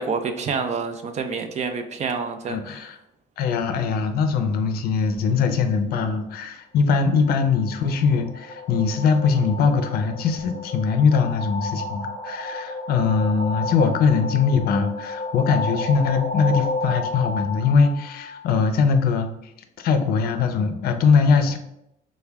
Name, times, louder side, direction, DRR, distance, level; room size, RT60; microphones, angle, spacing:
voice 1, 0.0-2.6, right 5 dB, 40° right, 7 dB, 0.4 m, -27 dB
voice 2, 2.5-3.0 3.4-19.3 19.8-21.6, left 5 dB, 65° left, 8 dB, 0.5 m, -21 dB
sound 1, 7.2-18.8, left 2 dB, 25° left, 0.7 m, -32 dB
3.4 x 2.2 x 3.3 m, 0.82 s
cardioid pair, 110°, 17 cm